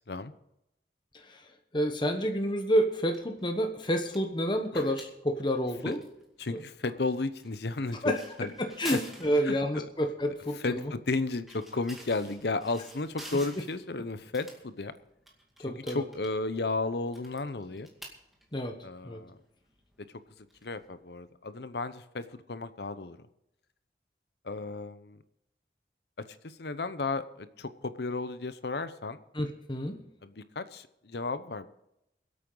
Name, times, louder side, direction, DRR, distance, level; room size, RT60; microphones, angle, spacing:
voice 1, 1.1-6.0 6.5-6.6 8.0-8.2 8.6-10.9 15.6-16.0 18.5-18.8 19.0-19.2 29.3-30.0, equal, 25° left, 4 dB, 1.1 m, -29 dB
sound 1, 2.9-21.3, right 1 dB, ahead, 2.2 m, -51 dB
voice 2, 6.4-8.5 8.9-9.0 9.4-9.9 10.6-15.0 15.7-17.9 18.8-19.4 20.4-23.2 24.4-25.2 26.3-29.2 30.2-31.7, left 3 dB, 75° left, 12 dB, 0.9 m, -34 dB
23.0 x 8.6 x 4.0 m, 0.82 s
head